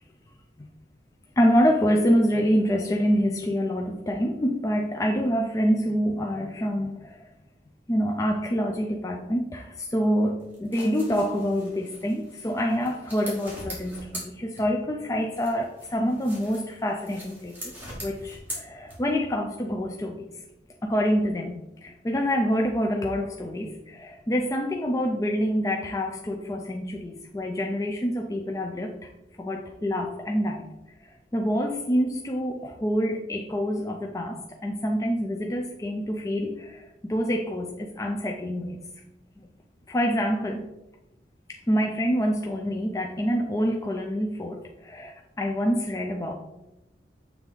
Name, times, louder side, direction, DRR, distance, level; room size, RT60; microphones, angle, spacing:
voice 1, 1.4-7.3 7.9-17.7 18.0-20.3 20.8-29.1 29.4-30.7 31.0-38.8 39.9-40.7 41.5-46.3, equal, 20° left, 1 dB, 0.4 m, -26 dB
sound 1, 10.4-15.0 15.3-19.3, equal, 10° right, 2.0 m, -42 dB
7.2 x 3.5 x 3.8 m, 0.95 s
head